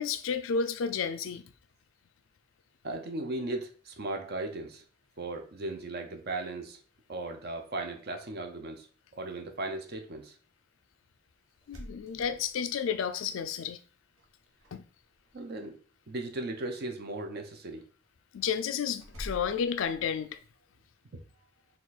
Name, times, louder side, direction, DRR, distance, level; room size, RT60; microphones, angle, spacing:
voice 1, 0.0-1.4 11.7-13.8 14.7-14.8 18.3-20.4, left 6 dB, 70° left, 0.4 m, -31 dB
voice 2, 2.8-4.8 5.2-6.8 7.1-8.9 9.1-10.4 15.3-15.8 16.1-17.8 21.1-21.2, right 2 dB, 50° right, 0.6 m, -37 dB
sound 1, 11.5-13.0 14.2-14.7 15.0-15.5 19.0-20.4, equal, 80° right, 1.2 m, -46 dB
4.4 x 2.4 x 4.0 m
head